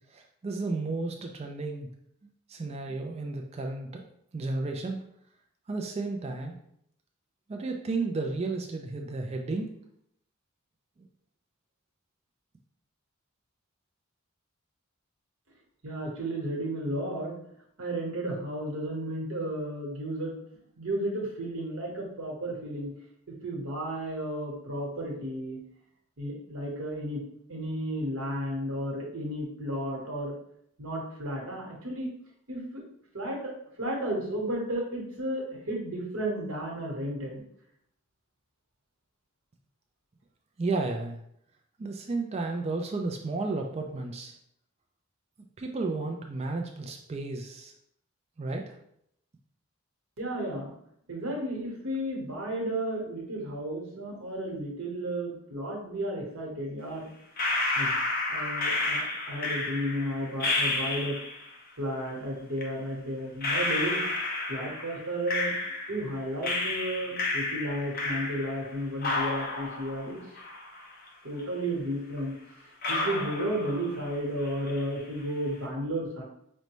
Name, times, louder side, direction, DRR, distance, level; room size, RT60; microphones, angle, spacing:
voice 1, 0.1-1.9 2.2-4.0 4.3-5.0 5.7-6.5 7.5-9.7 40.6-41.2 41.8-44.3 45.6-47.7 48.4-48.7, right 3 dB, 30° right, 3 dB, 0.3 m, -33 dB
voice 2, 15.8-17.3 17.8-20.3 20.8-22.9 23.4-25.6 26.2-27.2 27.5-30.3 30.8-32.1 32.5-32.8 33.1-37.4 50.2-50.7 51.1-57.1 57.7-57.9 58.3-61.2 61.8-64.0 64.5-65.5 65.9-70.2 71.2-72.3 72.9-76.2, right 1 dB, 70° right, -2 dB, 1.1 m, -33 dB
sound 1, 57.4-61.5 62.6-62.7 63.4-66.1 66.4-68.7 69.0-71.1 71.4-71.5 72.2-72.3 72.8-74.1 74.4-75.0, left 2 dB, 45° left, 0.6 m, -31 dB
5.1 x 2.2 x 3.0 m, 0.72 s
head